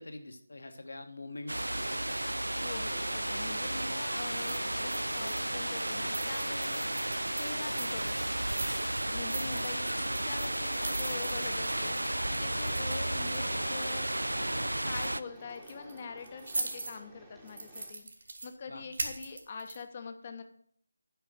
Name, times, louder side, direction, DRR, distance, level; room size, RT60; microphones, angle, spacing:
voice 1, 0.0-2.4 9.3-9.8 18.7-18.8, left 2 dB, 60° left, 7 dB, 1.3 m, -45 dB
sound 1, 1.5-15.2, right 1 dB, 75° right, 0.4 m, -33 dB
voice 2, 2.6-6.9 7.3-8.2 9.1-14.1 14.8-18.1 18.4-20.4, left 5 dB, 30° left, 7 dB, 0.8 m, -44 dB
sound 2, 2.9-17.9, right 1 dB, 5° right, 1.1 m, -54 dB
sound 3, 4.3-5.5 5.8-12.9 13.3-14.5 14.8-15.1 15.5-17.0 17.4-18.5 18.9-19.8, right 2 dB, 55° right, 1.8 m, -41 dB
9.4 x 5.0 x 6.5 m, 0.62 s
figure-of-eight pair, 160°, 0 cm